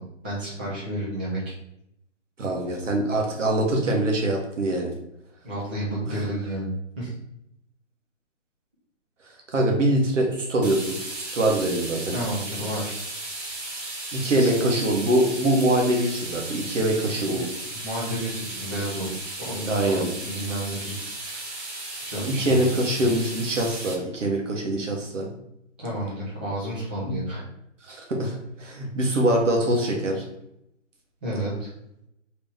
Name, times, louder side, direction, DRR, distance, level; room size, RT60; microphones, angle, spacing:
voice 1, 0.2-1.4 5.4-6.7 7.0-7.1 12.1-13.0 13.7-13.8 14.3-14.6 17.3-17.4 17.7-19.1 19.4-21.4 22.0-22.6 23.0-23.1 25.8-27.4 31.2-31.7, right 1 dB, 10° right, -8 dB, 0.5 m, -31 dB
voice 2, 2.4-4.9 6.1-6.2 9.5-12.2 14.1-17.5 19.7-20.1 22.3-25.3 27.0-27.2 27.8-30.2, right 1 dB, 70° right, 1 dB, 1.0 m, -24 dB
sound 1, 10.6-23.9, right 2 dB, 55° right, 1.4 m, -35 dB
3.4 x 2.9 x 3.3 m, 0.80 s
figure-of-eight pair, 140°, 38 cm